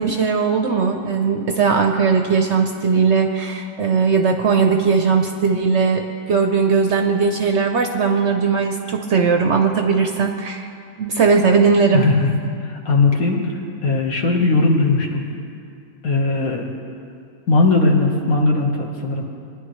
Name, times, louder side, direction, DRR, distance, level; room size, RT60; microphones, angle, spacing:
voice 1, 0.0-10.7 11.0-12.1, right 5 dB, 60° right, 4 dB, 0.8 m, -18 dB
voice 2, 11.9-12.3 12.6-13.4 13.8-15.2 16.0-16.7 17.5-19.2, left 3 dB, 65° left, 0 dB, 1.7 m, -18 dB
22.0 x 10.0 x 3.1 m, 2.4 s
omnidirectional pair, 1.6 m